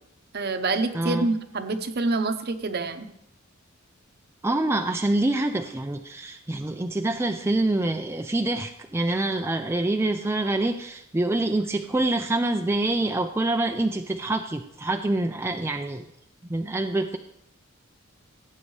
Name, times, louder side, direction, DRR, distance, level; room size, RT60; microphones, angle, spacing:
voice 1, 0.3-3.1, right 3 dB, 50° right, 8 dB, 0.8 m, -26 dB
voice 2, 0.9-1.3 4.4-16.1 16.5-17.2, right 2 dB, 10° right, 5 dB, 0.4 m, -26 dB
17.0 x 8.5 x 3.2 m, 0.78 s
head